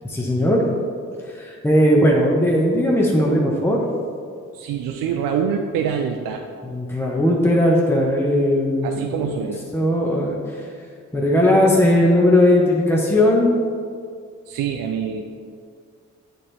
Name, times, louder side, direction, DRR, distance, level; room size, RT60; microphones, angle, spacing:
voice 1, 0.1-0.7 1.3-3.8 6.7-9.4 9.7-10.7 11.1-13.5, left 1 dB, 5° left, -3 dB, 1.1 m, -18 dB
voice 2, 4.5-6.4 8.8-9.6 14.5-15.2, right 7 dB, 80° right, 4 dB, 0.5 m, -25 dB
8.6 x 4.3 x 3.4 m, 2.2 s
supercardioid pair, 55°, 33 cm